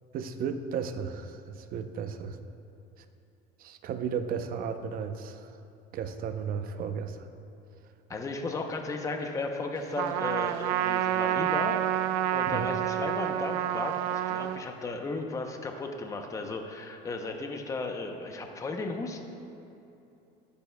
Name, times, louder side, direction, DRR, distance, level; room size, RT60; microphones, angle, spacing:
voice 1, 0.1-2.4 3.6-5.5 5.9-7.2 12.5-12.7, right 6 dB, 45° right, 8 dB, 0.6 m, -34 dB
voice 2, 8.1-19.2, left 3 dB, 15° left, 4 dB, 0.6 m, -35 dB
Trumpet, 10.0-14.6, right 12 dB, 90° right, 0.4 m, -28 dB
20.0 x 6.9 x 2.2 m, 2.8 s
cardioid pair, 130°, 21 cm